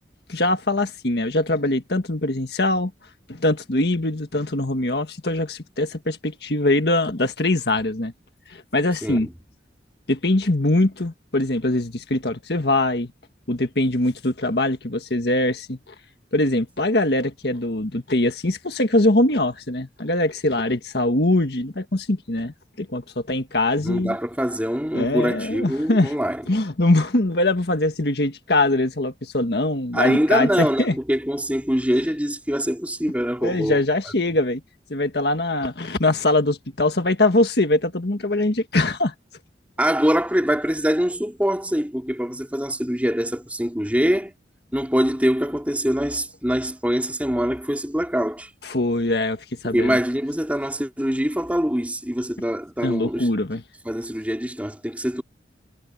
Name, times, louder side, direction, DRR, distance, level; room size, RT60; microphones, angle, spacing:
voice 1, 0.3-2.9 3.3-8.1 8.5-9.3 10.1-13.1 13.5-15.9 16.3-24.1 24.9-26.1 26.5-30.9 33.4-34.6 34.9-39.1 48.7-50.0 52.8-53.6, left 2 dB, 65° left, 1.7 m, -22 dB
voice 2, 9.0-9.3 23.8-26.4 29.9-33.8 39.8-44.3 44.7-48.5 49.6-53.6 53.8-55.2, equal, 10° right, 4.0 m, -24 dB
head